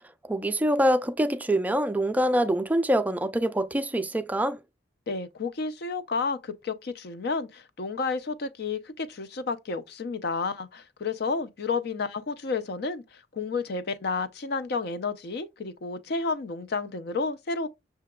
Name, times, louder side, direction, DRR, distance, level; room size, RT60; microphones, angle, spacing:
voice 1, 0.2-4.6, right 1 dB, 10° right, 0.3 m, -25 dB
voice 2, 5.1-17.7, left 4 dB, 60° left, 0.5 m, -31 dB
6.7 x 2.8 x 2.2 m
head